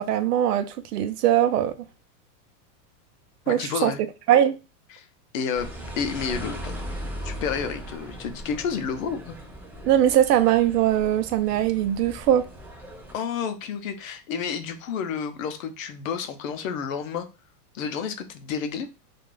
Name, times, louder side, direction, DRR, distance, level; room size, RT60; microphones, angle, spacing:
voice 1, 0.0-1.7 3.5-3.9 4.3-4.6 9.8-12.5, right 11 dB, 80° right, 0.5 m, -21 dB
voice 2, 3.5-4.0 4.9-5.1 5.3-5.7 6.0-6.8 7.2-9.4 13.1-17.3 17.7-18.9, left 6 dB, 60° left, 0.5 m, -30 dB
sound 1, 5.5-13.1, equal, 20° right, 0.3 m, -38 dB
2.4 x 2.2 x 3.0 m
supercardioid pair, 170°, 47 cm